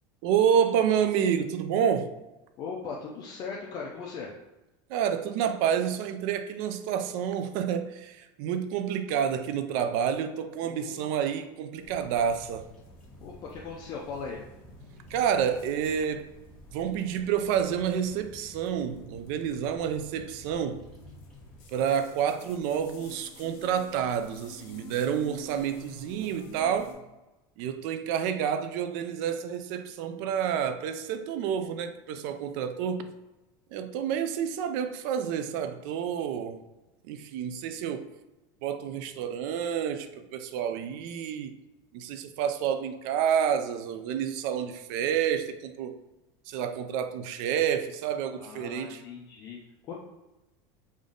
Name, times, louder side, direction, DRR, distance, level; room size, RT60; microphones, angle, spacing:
voice 1, 0.2-2.1 4.9-12.7 15.1-16.3 16.7-20.9 21.7-27.0 27.6-33.1 33.7-36.6 37.1-38.1 38.6-41.5 41.9-46.0 46.5-49.0, right 8 dB, 60° right, 0.4 m, -29 dB
voice 2, 2.6-4.3 10.6-11.0 13.2-14.4 48.4-49.6 49.9-50.0, left 5 dB, 40° left, 0.5 m, -39 dB
sound 1, 11.8-26.9, left 4 dB, 60° left, 1.2 m, -52 dB
Bird vocalization bird call bird song, 11.8-21.6, left 1 dB, 5° left, 1.0 m, -51 dB
3.5 x 2.6 x 3.7 m
supercardioid pair, 145°, 11 cm